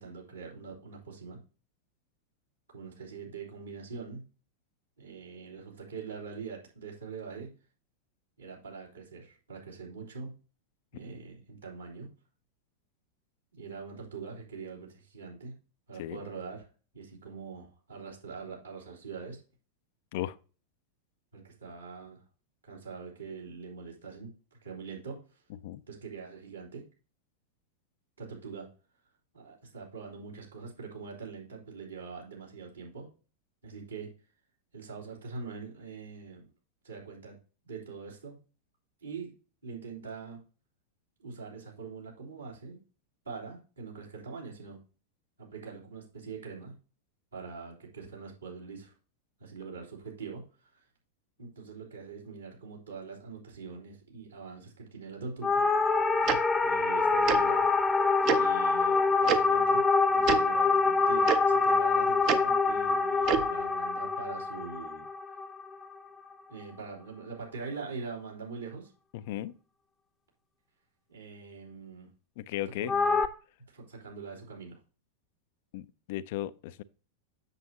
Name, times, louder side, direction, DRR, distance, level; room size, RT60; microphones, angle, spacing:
voice 1, 0.0-1.4 2.7-4.2 5.0-7.5 8.4-10.3 10.9-12.1 13.5-15.5 15.9-16.6 16.9-19.4 21.3-22.2 22.6-24.3 24.6-25.2 25.9-26.8 28.2-28.7 29.3-33.1 33.6-34.1 34.7-36.4 36.8-37.4 37.6-38.4 39.0-39.3 39.6-40.4 41.2-42.8 43.2-44.8 45.4-46.7 47.3-48.9 49.4-50.4 50.7-50.8 51.4-55.6 56.6-59.8 60.1-65.0 66.5-68.9 71.1-72.1 72.8-73.2 73.7-74.8, right 5 dB, 80° right, 3.4 m, -43 dB
sound 1, 55.4-65.9 72.9-73.3, left 4 dB, 10° left, 0.7 m, -25 dB
Tick-tock, 56.3-56.4 57.3-57.4 58.3-58.4 59.3-59.4 60.2-60.4 61.3-61.4 62.3-62.4 63.2-63.5, right 10 dB, 40° right, 0.7 m, -26 dB
voice 2, 69.1-69.5 72.4-72.9 75.7-76.8, left 13 dB, 50° left, 0.4 m, -36 dB
8.2 x 6.9 x 2.9 m
figure-of-eight pair, 90°, 0 cm